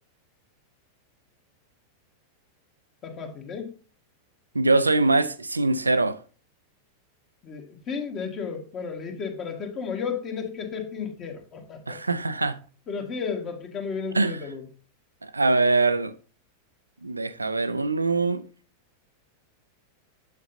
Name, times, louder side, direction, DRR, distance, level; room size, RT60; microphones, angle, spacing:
voice 1, 3.0-3.7 7.4-12.0 12.9-14.7, left 6 dB, 30° left, 1.6 m, -33 dB
voice 2, 4.5-6.2 11.9-12.6 14.1-14.4 15.2-16.1 17.0-18.4, right 3 dB, 80° right, 0.4 m, -23 dB
8.2 x 6.7 x 2.7 m
figure-of-eight pair, 90°, 0 cm